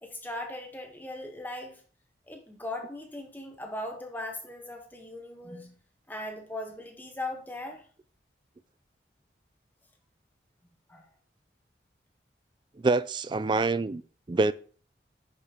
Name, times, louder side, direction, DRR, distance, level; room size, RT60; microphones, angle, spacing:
voice 1, 0.0-1.8 2.3-5.7 6.1-7.8 10.9-11.1, left 1 dB, 10° left, 1.2 m, -39 dB
voice 2, 12.8-14.0 14.3-14.5, right 3 dB, 25° right, 0.3 m, -25 dB
9.9 x 6.8 x 2.9 m
head